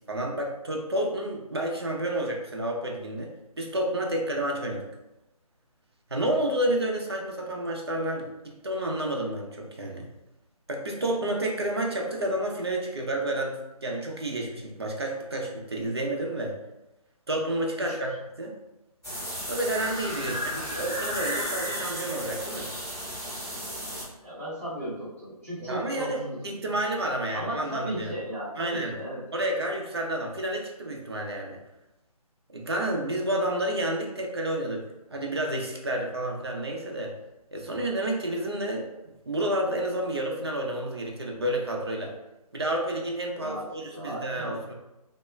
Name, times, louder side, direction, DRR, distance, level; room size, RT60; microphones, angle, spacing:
voice 1, 0.1-3.3 3.6-4.8 6.1-8.3 8.6-10.1 10.7-16.6 17.3-18.1 18.4-18.5 19.5-22.7 25.7-26.2 26.4-28.1 28.6-28.9 29.3-31.6 32.5-34.8 35.1-37.1 37.5-38.9 39.3-42.1 42.5-44.7, right 1 dB, 40° right, 0 dB, 0.4 m, -30 dB
sound 1, 19.0-24.0, equal, ahead, 1.1 m, -33 dB
voice 2, 24.2-26.7 27.3-29.2 43.4-44.5, right 1 dB, 20° left, -13 dB, 0.5 m, -36 dB
2.3 x 2.1 x 3.0 m, 0.95 s
hypercardioid pair, 180°, 20 cm